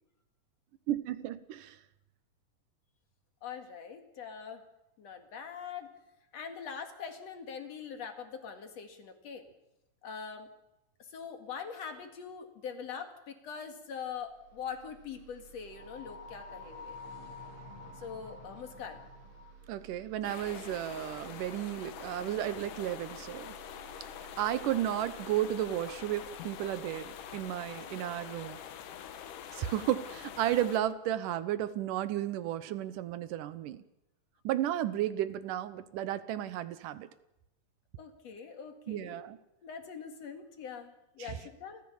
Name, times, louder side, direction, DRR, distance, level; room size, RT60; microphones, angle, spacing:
voice 1, 0.9-1.8 19.7-23.6 24.4-28.6 29.5-33.8 34.4-37.1 38.9-39.4 41.2-41.4, right 12 dB, 85° right, 14 dB, 2.6 m, -33 dB
voice 2, 3.4-4.6 5.0-5.9 6.3-9.4 10.0-10.5 11.1-17.0 18.0-19.0 38.0-39.3 39.6-41.8, left 6 dB, 55° left, 6 dB, 3.0 m, -43 dB
sound 1, 14.0-29.4, right 6 dB, 50° right, 2.1 m, -56 dB
sound 2, 15.7-19.7, left 5 dB, 10° left, 3.1 m, -49 dB
sound 3, 20.2-30.8, left 9 dB, 80° left, 2.7 m, -45 dB
29.5 x 14.5 x 7.2 m, 0.89 s
omnidirectional pair, 3.6 m